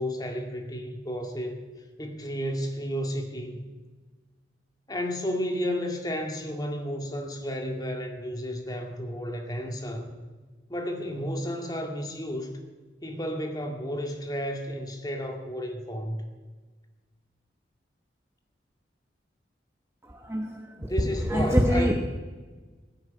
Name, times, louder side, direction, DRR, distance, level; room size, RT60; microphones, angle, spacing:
voice 1, 0.0-1.6 2.0-3.6 4.9-10.1 10.7-12.6 13.0-16.2 20.8-21.9, equal, 20° left, 3 dB, 2.1 m, -32 dB
voice 2, 20.2-20.9 21.3-21.9, equal, 15° right, 3 dB, 1.1 m, -24 dB
16.0 x 9.8 x 8.7 m, 1.4 s
head